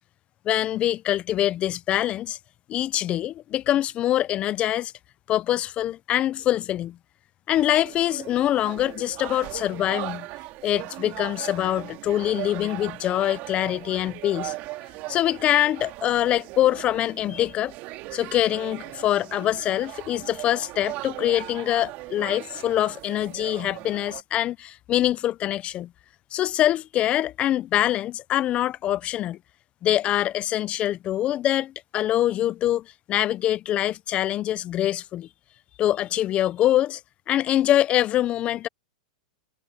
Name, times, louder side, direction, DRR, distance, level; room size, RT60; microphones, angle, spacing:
voice 1, 0.5-2.4 2.7-4.9 5.3-7.0 7.5-10.3 10.6-14.5 15.1-17.7 18.1-25.9 26.3-29.4 29.8-35.3 35.8-37.0 37.3-38.7, left 12 dB, 25° left, 0.5 m, -24 dB
sound 1, 7.5-24.2, right 20 dB, 40° right, 2.9 m, -39 dB
supercardioid pair, 140°, 4 cm